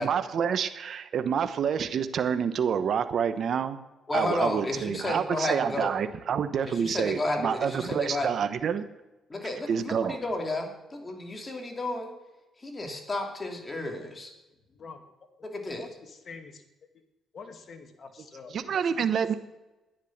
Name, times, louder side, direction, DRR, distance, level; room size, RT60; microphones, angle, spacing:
voice 1, 0.0-3.8 4.1-8.8 9.7-10.2 18.5-19.3, right 7 dB, 60° right, 11 dB, 1.0 m, -28 dB
voice 2, 4.1-5.9 6.7-8.3 9.3-12.1 12.6-14.3 15.4-15.9, left 2 dB, 25° left, 2 dB, 2.9 m, -32 dB
voice 3, 14.7-15.0 15.4-15.5 15.7-16.6 16.9-17.0 17.3-18.6 19.2-19.3, left 5 dB, 50° left, 5 dB, 2.2 m, -46 dB
11.5 x 10.0 x 7.3 m, 1.0 s
cardioid pair, 90°, 0 cm